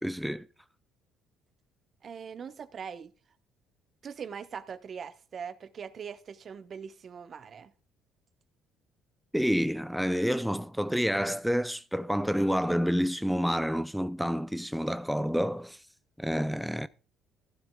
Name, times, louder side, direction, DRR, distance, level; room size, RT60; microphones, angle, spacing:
voice 1, 0.0-0.5 9.3-15.8 16.2-16.9, equal, ahead, 0.5 m, -28 dB
voice 2, 2.0-3.1 4.0-7.7, right 7 dB, 45° right, 1.1 m, -41 dB
14.5 x 12.0 x 2.3 m
supercardioid pair, 70°, 0 cm